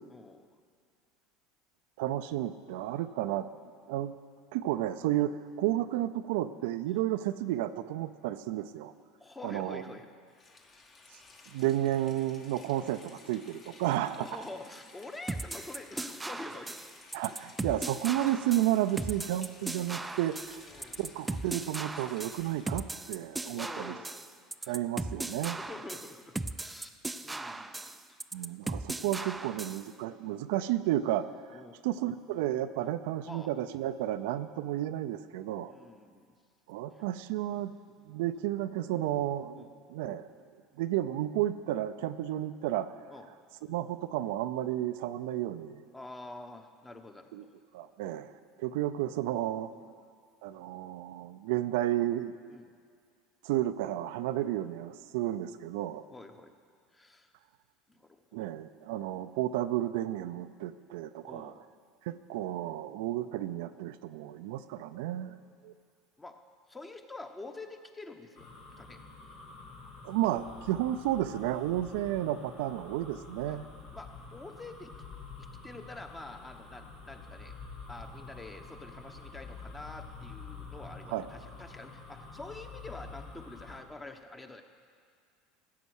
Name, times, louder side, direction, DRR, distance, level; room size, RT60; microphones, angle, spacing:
voice 1, 0.1-0.5 9.2-10.1 10.4-10.6 14.2-16.8 17.1-17.3 20.6-21.1 23.5-24.3 24.6-24.8 25.5-27.0 27.2-28.5 31.5-31.8 33.2-33.5 35.6-36.3 39.6-39.8 43.1-43.3 45.9-47.5 49.7-49.9 52.5-52.7 56.1-56.5 56.9-57.3 57.9-58.2 61.2-61.6 65.1-65.4 66.2-66.4 66.7-68.5 68.8-69.0 73.5-73.6 73.9-74.9 75.4-77.6 77.9-84.6, left 2 dB, 15° left, 6 dB, 1.2 m, -47 dB
voice 2, 2.0-3.5 3.9-4.1 4.5-8.9 9.4-9.8 11.5-14.3 17.1-24.0 24.7-25.6 28.3-35.7 36.7-37.7 38.1-40.3 40.8-42.9 43.7-45.8 47.3-47.4 47.7-48.3 48.6-49.7 50.4-52.4 53.4-56.0 58.3-61.5 62.0-65.4 65.6-65.7 70.0-73.7 81.1-81.3, right 13 dB, 75° right, 11 dB, 0.5 m, -32 dB
Rain, 10.3-22.9, left 3 dB, 40° left, 1.8 m, -55 dB
sound 1, 15.3-29.9, right 2 dB, 10° right, 0.4 m, -38 dB
sound 2, 68.3-83.8, left 4 dB, 70° left, 2.8 m, -48 dB
15.0 x 8.0 x 6.4 m, 2.1 s
hypercardioid pair, 85°, 0 cm